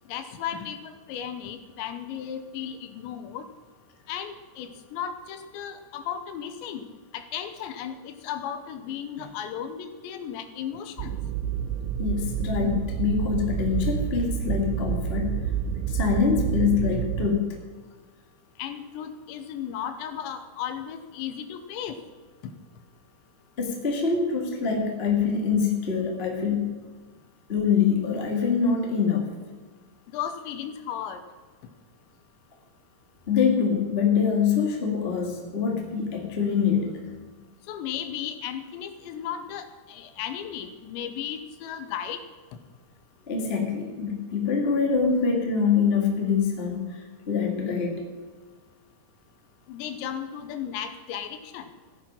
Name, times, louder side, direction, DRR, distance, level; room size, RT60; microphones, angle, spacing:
voice 1, 0.1-3.5 4.1-6.8 7.1-11.2 18.6-22.0 30.1-31.2 37.7-42.2 49.7-51.7, left 9 dB, 80° left, 9 dB, 3.2 m, -35 dB
sound 1, 11.0-17.3, right 9 dB, 85° right, 3.0 m, -28 dB
voice 2, 12.0-15.4 15.8-17.6 23.6-26.8 27.5-29.3 33.3-37.0 43.3-47.0 47.3-48.0, left 6 dB, 40° left, 1 dB, 0.8 m, -25 dB
15.0 x 10.5 x 5.6 m, 1.4 s
omnidirectional pair, 5.3 m